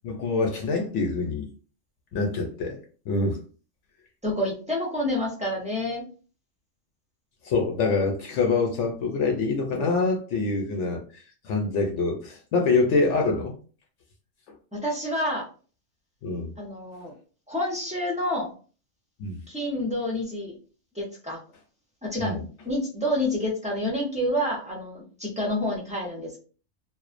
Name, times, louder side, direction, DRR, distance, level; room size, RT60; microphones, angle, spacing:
voice 1, 0.0-1.5 2.1-2.8 3.1-3.4 7.4-13.5 16.2-16.5 19.2-19.4 22.2-22.4, left 3 dB, 70° left, 0.9 m, -25 dB
voice 2, 4.2-6.0 10.6-10.7 14.7-15.5 16.6-17.1 17.5-18.5 19.5-20.6 20.9-21.4 22.0-26.4, left 1 dB, 10° right, 0.3 m, -28 dB
2.4 x 2.0 x 2.4 m
omnidirectional pair, 1.3 m